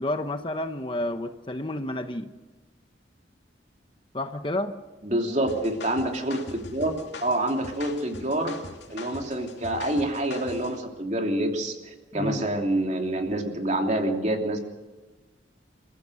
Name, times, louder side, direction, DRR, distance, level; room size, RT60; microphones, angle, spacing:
voice 1, 0.0-2.3 4.1-4.8 12.1-12.5, left 1 dB, 25° left, 7 dB, 1.0 m, -30 dB
voice 2, 5.0-6.9 7.2-8.6 8.9-14.7, right 1 dB, 40° right, 2 dB, 3.0 m, -27 dB
sound 1, 5.5-10.8, left 3 dB, 65° left, 2.7 m, -42 dB
29.0 x 15.0 x 6.4 m, 1.2 s
head